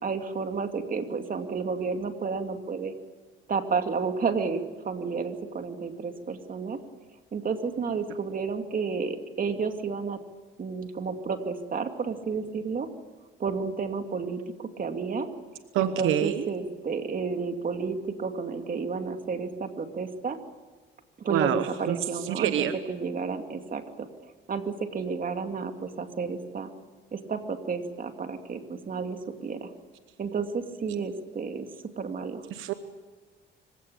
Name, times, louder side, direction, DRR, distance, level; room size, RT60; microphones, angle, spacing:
voice 1, 0.0-2.9 3.5-6.8 7.3-10.2 10.6-12.9 13.4-15.3 15.8-20.4 21.2-26.7 27.1-29.7 30.2-31.7 32.0-32.4, right 5 dB, 45° right, 6 dB, 2.6 m, -31 dB
voice 2, 15.7-16.4 21.3-22.0 22.3-22.7 32.5-32.7, right 11 dB, 90° right, 10 dB, 1.1 m, -26 dB
25.5 x 16.5 x 8.7 m, 1.4 s
cardioid pair, 90°, 20 cm